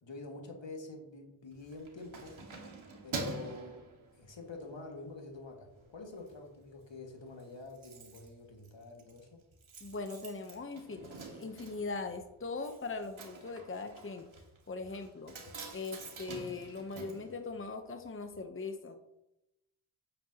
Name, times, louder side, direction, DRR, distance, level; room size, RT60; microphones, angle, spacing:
voice 1, 0.0-2.4 3.0-3.8 4.2-9.4, left 3 dB, 65° left, 1 dB, 2.0 m, -47 dB
Keys jangling, 1.5-4.6 5.1-5.3 5.7-6.4 6.6-6.7 7.0-7.1 7.2-18.1 18.3-18.4, right 3 dB, 80° right, 1.9 m, -46 dB
voice 2, 9.8-14.3 14.7-15.3 15.7-19.0, left 3 dB, 25° left, 6 dB, 0.9 m, -40 dB
9.2 x 8.7 x 2.9 m, 0.88 s
cardioid pair, 65°, 47 cm